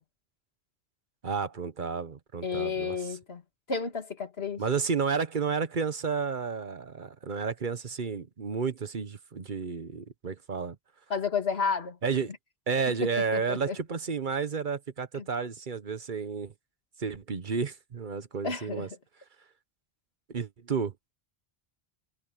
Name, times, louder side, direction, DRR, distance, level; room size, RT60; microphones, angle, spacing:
voice 1, 1.2-2.9 4.6-10.8 12.0-12.3 12.7-16.5 17.0-18.9 20.3-20.9, right 5 dB, 55° right, 1.1 m, -31 dB
voice 2, 2.4-3.4 3.7-4.6 11.1-12.0 13.3-13.8 15.2-15.3 18.4-18.9, left 5 dB, 80° left, 2.4 m, -31 dB
omnidirectional pair, 1.0 m